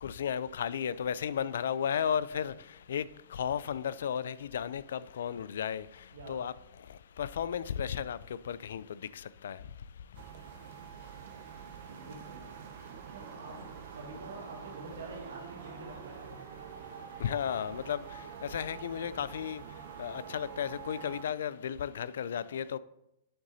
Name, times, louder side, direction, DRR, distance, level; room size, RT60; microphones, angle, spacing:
voice 1, 0.0-2.5 2.9-3.0 3.3-5.8 6.3-6.5 7.2-8.2 8.5-8.8 9.4-9.6 17.2-18.0 18.5-19.6 20.0-22.8, left 8 dB, 80° left, 0.3 m, -33 dB
sound 1, 10.1-21.2, right 7 dB, 60° right, 0.8 m, -46 dB
voice 2, 11.9-12.5 13.1-13.7 13.9-16.4, right 3 dB, 80° right, 2.0 m, -47 dB
7.8 x 3.8 x 4.1 m
hypercardioid pair, 135°, 0 cm